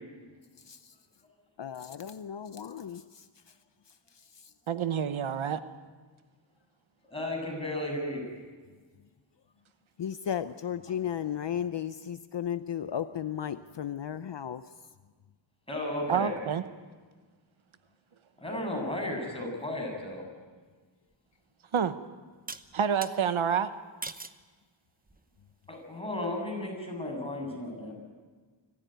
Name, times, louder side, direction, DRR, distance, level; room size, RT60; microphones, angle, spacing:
voice 1, 0.6-0.9 1.6-3.5 3.9-4.5 10.0-14.7, left 9 dB, 60° left, 11 dB, 0.7 m, -35 dB
voice 2, 4.7-5.6 16.1-16.6 21.7-21.9 22.7-23.7, right 7 dB, 80° right, 11 dB, 1.0 m, -28 dB
voice 3, 7.1-8.2 15.7-16.3 18.4-20.2 25.7-27.9, left 1 dB, 10° left, 0 dB, 7.9 m, -34 dB
sound 1, 21.1-21.2 22.5-23.1 24.0-24.4 25.1-25.5, right 3 dB, 20° right, 0.9 m, -41 dB
25.5 x 15.0 x 9.3 m, 1.4 s
wide cardioid pair, 95°, 47 cm